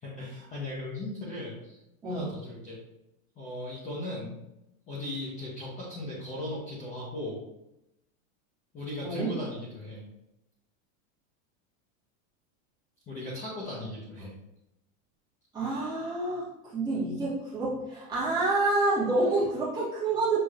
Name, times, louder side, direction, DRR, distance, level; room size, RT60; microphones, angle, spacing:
voice 1, 0.0-1.8 2.0-2.8 3.4-4.3 4.9-7.4 8.7-10.1 13.1-14.3 19.3-19.4, left 1 dB, 15° left, -6 dB, 0.7 m, -37 dB
voice 2, 9.0-9.3 15.5-20.4, right 2 dB, 10° right, -9 dB, 1.4 m, -28 dB
6.5 x 2.9 x 2.4 m, 0.88 s
supercardioid pair, 160°, 42 cm